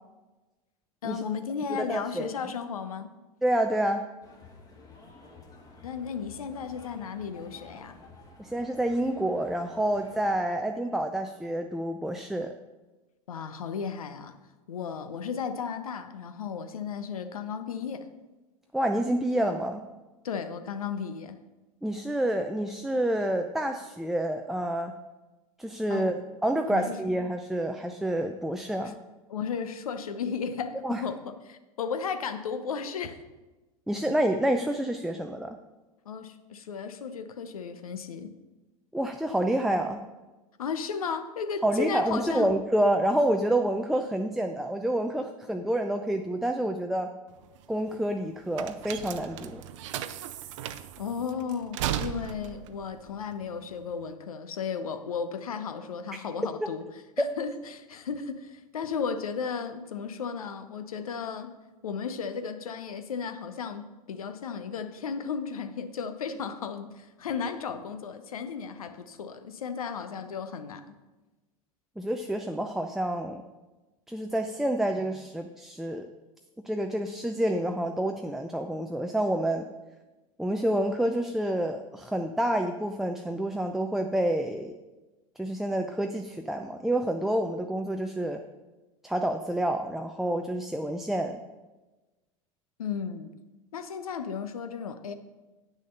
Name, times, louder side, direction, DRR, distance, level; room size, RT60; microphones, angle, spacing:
voice 1, 1.0-3.1 5.8-7.9 13.3-14.3 14.7-18.1 20.2-21.4 25.9-26.2 26.7-27.1 29.3-31.2 31.4-33.2 36.1-38.3 40.6-42.5 51.0-56.8 57.2-61.5 61.8-70.8 92.8-93.3 93.7-95.1, left 6 dB, 75° left, 10 dB, 0.8 m, -34 dB
voice 2, 1.7-2.3 3.4-4.0 8.4-12.5 18.7-19.8 21.8-24.9 25.6-26.1 26.4-29.0 30.8-31.0 33.9-35.6 38.9-40.0 41.6-47.1 47.7-49.6 72.0-73.4 74.1-76.1 76.6-79.7 80.4-84.8 85.4-88.4 89.0-91.4, right 1 dB, ahead, 5 dB, 0.4 m, -28 dB
sound 1, 4.2-10.4, left 3 dB, 20° left, 1.9 m, -51 dB
sound 2, 47.3-54.1, right 11 dB, 55° right, 0.6 m, -36 dB
8.6 x 6.3 x 5.4 m, 1.1 s
figure-of-eight pair, 90°, 19 cm